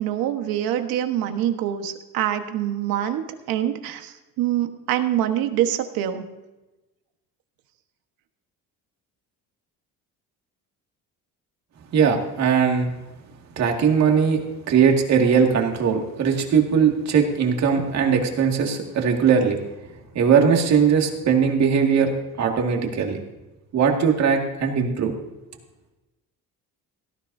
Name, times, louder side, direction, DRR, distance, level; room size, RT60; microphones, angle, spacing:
voice 1, 0.0-3.2 3.5-6.2, right 11 dB, 85° right, 7 dB, 1.4 m, -25 dB
voice 2, 11.9-12.9 13.6-19.6 20.1-23.2 23.7-25.1, right 6 dB, 50° right, 2 dB, 2.2 m, -20 dB
17.5 x 14.0 x 2.7 m, 1.1 s
cardioid pair, 155°, 35 cm